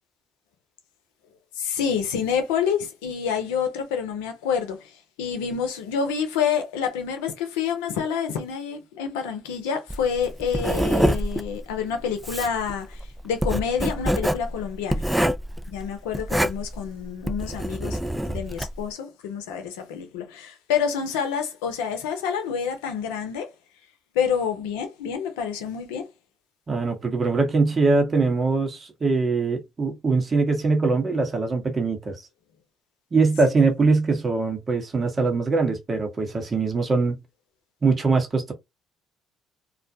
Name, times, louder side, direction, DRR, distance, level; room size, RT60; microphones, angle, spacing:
voice 1, 1.6-15.0 15.7-23.5 24.1-26.1, left 7 dB, 85° left, 0.7 m, -28 dB
Writing, 9.9-18.8, equal, 5° right, 0.4 m, -26 dB
voice 2, 26.7-32.2 33.1-37.2 37.8-38.5, right 3 dB, 40° right, 1.0 m, -22 dB
2.4 x 2.2 x 2.6 m
hypercardioid pair, 60°, 0 cm